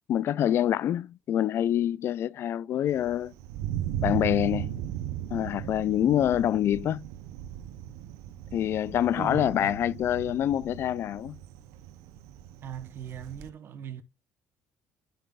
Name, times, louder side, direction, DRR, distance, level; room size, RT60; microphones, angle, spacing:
voice 1, 0.1-3.3 4.0-4.7 5.3-7.0 8.5-11.4, left 11 dB, 55° left, 0.3 m, -26 dB
Thunder, 2.9-13.5, right 12 dB, 90° right, 0.6 m, -37 dB
voice 2, 9.1-9.8 12.6-14.0, right 8 dB, 50° right, 0.9 m, -38 dB
9.9 x 5.5 x 2.4 m
cardioid pair, 110°, 5 cm